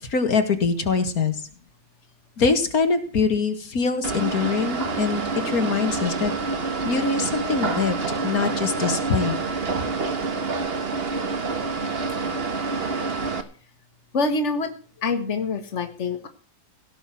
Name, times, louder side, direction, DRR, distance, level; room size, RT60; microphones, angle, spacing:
voice 1, 0.0-1.5 2.4-8.0 8.2-9.4, left 4 dB, 85° left, 8 dB, 2.4 m, -24 dB
sound 1, 4.0-13.4, right 4 dB, 45° right, 1.6 m, -27 dB
voice 2, 14.1-14.7 15.0-16.3, left 3 dB, 55° left, 8 dB, 1.9 m, -25 dB
17.0 x 6.5 x 7.7 m, 0.40 s
omnidirectional pair, 1.5 m